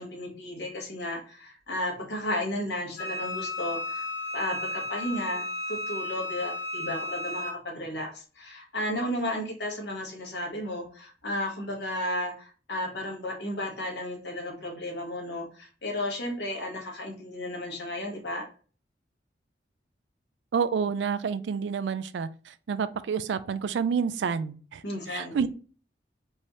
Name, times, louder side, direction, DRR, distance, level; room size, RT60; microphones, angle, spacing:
voice 1, 0.0-4.0 4.3-18.4 24.8-25.3, left 1 dB, 70° left, -1 dB, 1.6 m, -33 dB
Wind instrument woodwind instrument, 3.0-7.6, left 2 dB, 45° left, 2.2 m, -34 dB
voice 2, 20.5-25.5, right 6 dB, 75° right, 15 dB, 0.4 m, -29 dB
4.6 x 2.8 x 3.1 m, 0.40 s
head